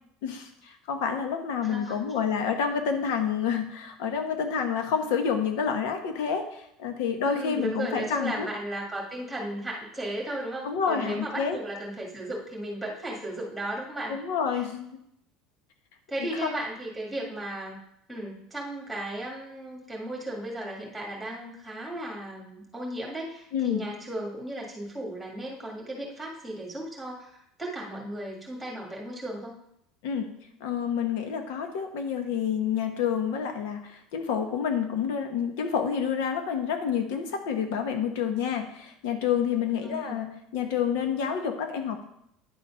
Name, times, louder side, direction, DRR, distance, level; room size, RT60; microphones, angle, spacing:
voice 1, 0.2-8.5 10.6-11.6 14.1-14.9 16.2-16.5 23.5-23.8 30.0-30.3 30.6-42.0, left 7 dB, 75° left, 6 dB, 1.1 m, -28 dB
voice 2, 1.6-2.0 7.3-14.2 14.5-14.6 16.1-17.8 18.1-27.3 27.6-29.5 39.8-40.3, right 1 dB, ahead, -2 dB, 1.8 m, -35 dB
9.8 x 4.2 x 5.5 m, 0.75 s
cardioid pair, 170°, 0 cm